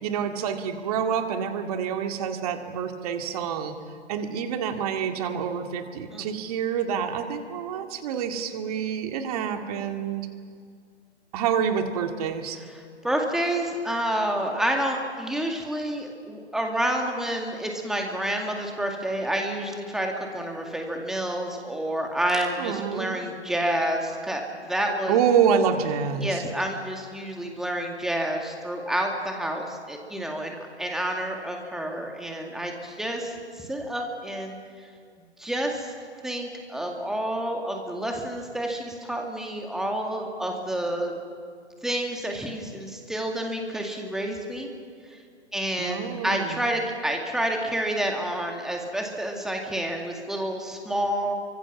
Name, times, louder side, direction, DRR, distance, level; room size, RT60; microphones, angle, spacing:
voice 1, 0.0-3.8 4.1-10.3 11.3-12.6 22.6-23.2 25.1-26.4 45.8-46.6, right 7 dB, 35° right, 5 dB, 2.2 m, -27 dB
voice 2, 13.0-25.2 26.2-34.6 35.4-35.9 36.2-41.1 41.8-44.7 45.1-45.2 45.5-51.4, right 1 dB, ahead, 1 dB, 2.2 m, -29 dB
29.5 x 25.0 x 6.1 m, 2.1 s
figure-of-eight pair, 135°, 34 cm